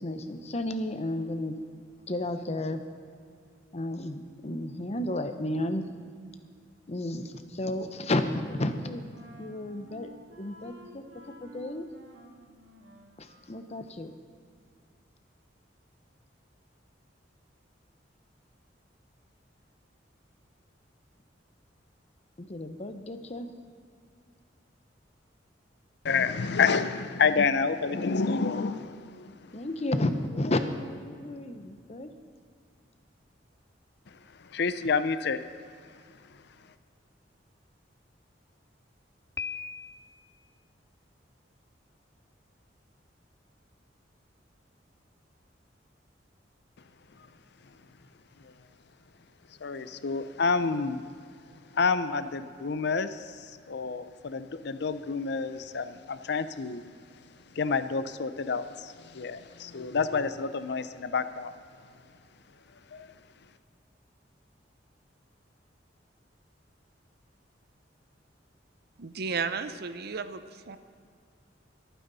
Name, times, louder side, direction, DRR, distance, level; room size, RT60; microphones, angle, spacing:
voice 1, 0.0-1.6 2.1-2.8 3.7-5.9 6.9-9.1 9.4-10.1 10.4-11.1 11.4-11.9 13.2-14.1 22.4-23.5 29.5-32.2, left 1 dB, 35° left, 8 dB, 0.9 m, -32 dB
Wind instrument woodwind instrument, 8.0-13.7, equal, 85° right, 1.8 m, -52 dB
voice 2, 26.0-29.5 34.5-35.5 48.4-48.5 49.6-51.0 51.7-56.8 57.5-61.5 62.9-63.1, left 5 dB, 65° left, 12 dB, 0.6 m, -29 dB
Piano, 39.4-40.3, left 5 dB, 15° left, 0.4 m, -38 dB
voice 3, 69.0-70.8, right 5 dB, 60° right, 11 dB, 0.7 m, -33 dB
24.0 x 9.3 x 4.1 m, 2.2 s
head